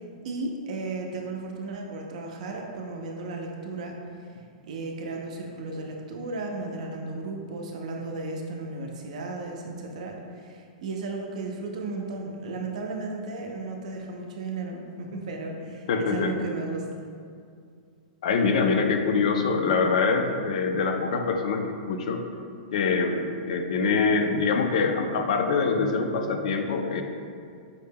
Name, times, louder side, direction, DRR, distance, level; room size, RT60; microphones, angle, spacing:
voice 1, 0.2-4.0 4.2-4.4 4.7-16.8, right 3 dB, 60° right, 1 dB, 0.5 m, -35 dB
voice 2, 15.9-16.4 18.2-22.2 22.7-27.0, left 4 dB, 55° left, 5 dB, 0.4 m, -24 dB
5.3 x 2.1 x 3.4 m, 2.3 s
supercardioid pair, 175°, 4 cm